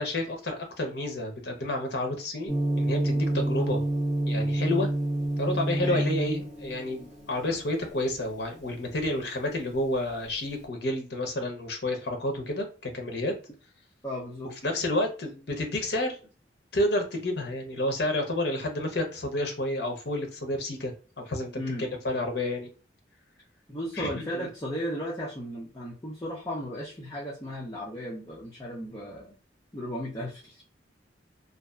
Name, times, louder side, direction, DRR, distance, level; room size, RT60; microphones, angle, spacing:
voice 1, 0.0-3.8 4.3-4.9 5.4-13.3 14.6-16.2 16.7-22.7 24.0-24.5, left 1 dB, 60° left, 4 dB, 0.7 m, -30 dB
Gong, 2.5-10.5, right 1 dB, 5° right, 1.5 m, -29 dB
voice 2, 14.0-14.5 21.6-21.9 23.7-29.3 29.7-30.6, equal, 15° left, -6 dB, 0.5 m, -35 dB
2.6 x 2.3 x 2.3 m, 0.35 s
head